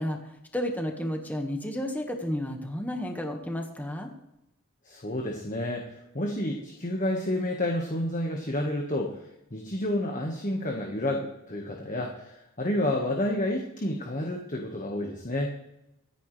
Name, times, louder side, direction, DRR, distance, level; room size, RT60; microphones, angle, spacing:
voice 1, 0.0-4.1, equal, 5° left, 3 dB, 1.6 m, -32 dB
voice 2, 4.8-15.5, left 1 dB, 35° left, 1 dB, 1.6 m, -30 dB
24.5 x 10.0 x 3.4 m, 0.90 s
head